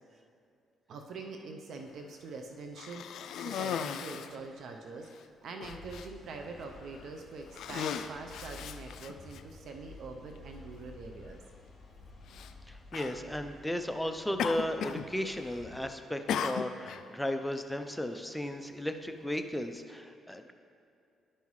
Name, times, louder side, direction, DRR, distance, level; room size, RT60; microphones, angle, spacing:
voice 1, 0.9-5.1 5.4-11.4, right 3 dB, 65° right, 3 dB, 0.6 m, -44 dB
Cough, 2.7-4.4 5.1-5.2 5.6-6.1 6.8-7.1 7.5-9.4 10.4-10.5 12.3-12.5 12.9-13.2 14.4-15.1 15.3-15.8 16.3-17.0, left 8 dB, 75° left, 0.3 m, -36 dB
sound 1, 5.6-15.8, left 3 dB, 50° left, 1.6 m, -53 dB
voice 2, 12.7-20.5, left 1 dB, 5° left, 6 dB, 0.5 m, -35 dB
11.0 x 5.5 x 3.2 m, 2.6 s
cardioid pair, 90°, 0 cm